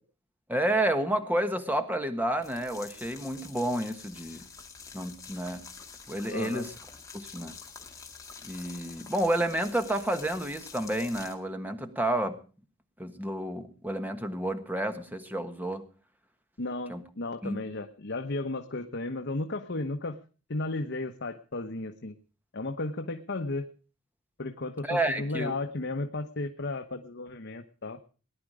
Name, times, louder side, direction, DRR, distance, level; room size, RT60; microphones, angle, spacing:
voice 1, 0.5-4.5 4.9-5.6 6.1-6.7 7.1-7.5 8.4-12.4 13.0-15.8 16.9-17.0 17.4-17.6 24.8-25.5, right 1 dB, 10° right, 8 dB, 1.4 m, -30 dB
sound 1, 2.3-11.3, left 5 dB, 15° left, 2.2 m, -47 dB
voice 2, 6.3-6.7 16.6-20.2 20.5-22.1 22.5-23.7 24.4-28.0, left 2 dB, 55° left, 6 dB, 1.1 m, -34 dB
19.0 x 11.0 x 4.9 m, 0.37 s
head